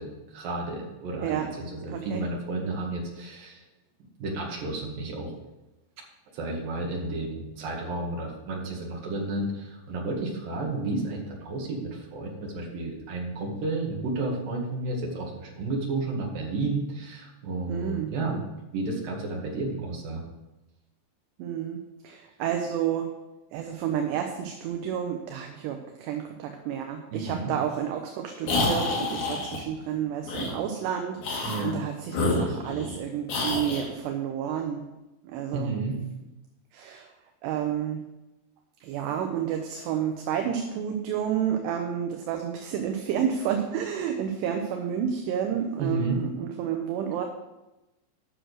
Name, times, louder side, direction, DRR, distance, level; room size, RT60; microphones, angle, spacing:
voice 1, 0.0-3.6 4.2-5.3 6.3-18.4 18.7-20.2 27.1-27.5 31.4-31.8 35.5-36.0 45.8-46.2, right 2 dB, 55° right, -2 dB, 3.3 m, -32 dB
voice 2, 1.9-2.2 17.7-18.4 21.4-21.8 22.0-23.1 23.5-34.9 35.2-35.7 36.7-37.1 37.4-38.0 38.8-47.3, right 9 dB, 75° right, 4 dB, 2.7 m, -30 dB
sound 1, 28.4-29.6 30.3-30.5 31.2-31.7 32.1-33.0 33.3-33.9, left 2 dB, 60° left, 3.8 m, -28 dB
10.0 x 6.3 x 6.3 m, 0.99 s
omnidirectional pair, 5.3 m